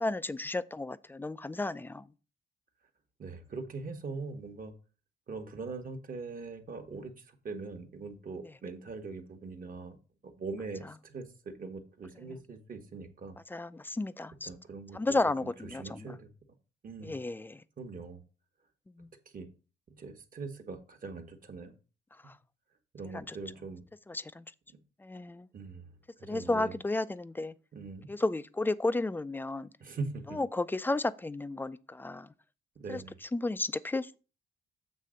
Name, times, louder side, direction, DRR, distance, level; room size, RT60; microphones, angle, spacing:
voice 1, 0.0-2.0 13.5-14.5 14.9-16.1 17.0-17.6 19.0-19.1 23.1-23.4 24.1-24.4 25.0-25.5 26.2-27.5 28.1-29.7 30.4-32.3 32.9-33.0 33.3-34.1, left 2 dB, 10° left, 0.4 m, -33 dB
voice 2, 3.2-4.7 5.3-7.1 7.4-10.0 10.2-13.4 14.4-16.3 16.8-17.2 17.8-18.2 19.3-19.5 19.9-21.7 22.9-23.8 25.5-25.9 26.2-26.8 27.7-28.1 29.8-30.4 32.8-33.1, right 4 dB, 45° right, 1.3 m, -42 dB
7.5 x 3.3 x 6.3 m
cardioid pair, 90°, 20 cm